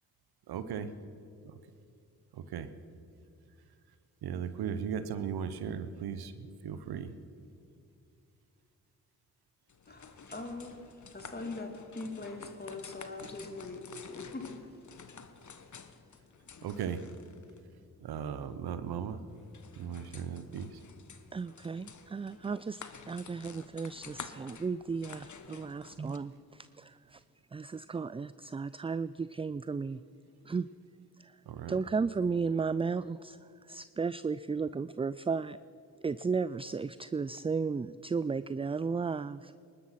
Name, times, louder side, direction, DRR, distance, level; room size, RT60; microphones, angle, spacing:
voice 1, 0.5-0.9 1.4-1.5 2.3-2.7 4.2-7.1 16.6-17.0 18.0-19.2 19.8-20.8 31.5-31.8, right 7 dB, 90° right, 11 dB, 0.9 m, -37 dB
sound 1, 9.7-26.2, left 6 dB, 50° left, 1.2 m, -51 dB
voice 2, 9.9-14.8, left 2 dB, 25° left, 4 dB, 2.8 m, -42 dB
voice 3, 21.3-27.2 27.5-30.0 30.5-30.7 31.2-31.3 31.7-33.4 33.7-35.6 36.0-39.5, right 5 dB, 15° right, 16 dB, 0.3 m, -34 dB
21.0 x 12.0 x 5.8 m, 2.6 s
supercardioid pair, 45°, 37 cm